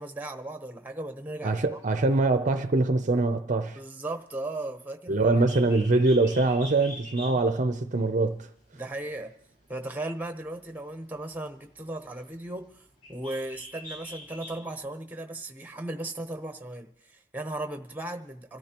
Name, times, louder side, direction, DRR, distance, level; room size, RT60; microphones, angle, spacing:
voice 1, 0.0-1.8 3.7-5.3 7.2-7.4 8.7-9.3 9.7-12.7 13.1-18.6, right 2 dB, 10° right, 0.9 m, -36 dB
voice 2, 1.4-3.8 5.1-8.5, right 2 dB, 40° right, 0.6 m, -23 dB
Bird, 5.3-14.8, equal, 50° left, 4.7 m, -47 dB
26.0 x 13.5 x 3.0 m
head